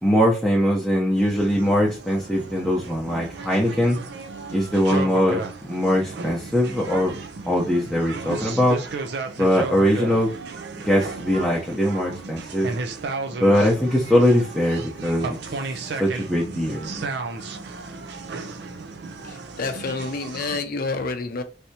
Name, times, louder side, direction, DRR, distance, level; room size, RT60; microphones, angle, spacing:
voice 1, 0.0-4.0 4.5-7.2 7.5-8.8 9.4-10.4 10.8-12.7 13.4-15.4 16.0-17.1, equal, ahead, 0.6 m, -21 dB
sound 1, 1.2-20.6, right 4 dB, 65° right, 0.5 m, -34 dB
voice 2, 19.2-21.4, left 3 dB, 55° left, 0.5 m, -29 dB
3.3 x 2.7 x 2.7 m
head